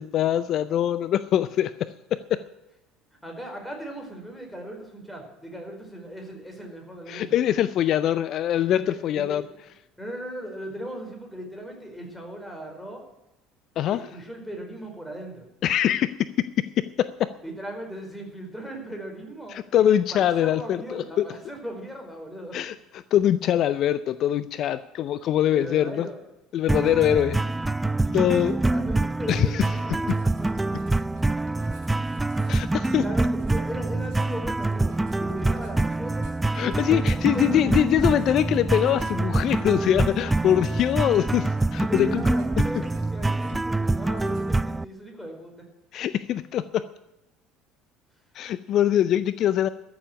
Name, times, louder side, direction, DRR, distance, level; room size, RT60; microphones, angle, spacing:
voice 1, 0.0-2.4 7.1-9.4 13.8-14.0 15.6-16.1 17.0-17.3 19.5-21.3 22.5-26.1 26.5-27.4 28.1-28.6 29.3-29.6 32.5-33.0 36.5-42.3 45.9-46.8 48.3-49.7, left 11 dB, 50° left, 15 dB, 0.5 m, -23 dB
voice 2, 3.2-7.4 8.7-9.4 10.0-13.0 13.8-15.5 17.4-19.6 20.1-22.6 25.5-26.2 28.0-30.5 32.4-36.4 36.6-37.6 41.9-45.5, right 1 dB, 5° left, 2 dB, 4.9 m, -38 dB
sound 1, 26.7-44.8, right 2 dB, 10° right, 0.4 m, -25 dB
Writing, 30.0-43.8 44.1-44.6, right 4 dB, 60° right, 3.5 m, -52 dB
13.5 x 7.2 x 9.2 m, 0.95 s
hypercardioid pair, 60°, 0 cm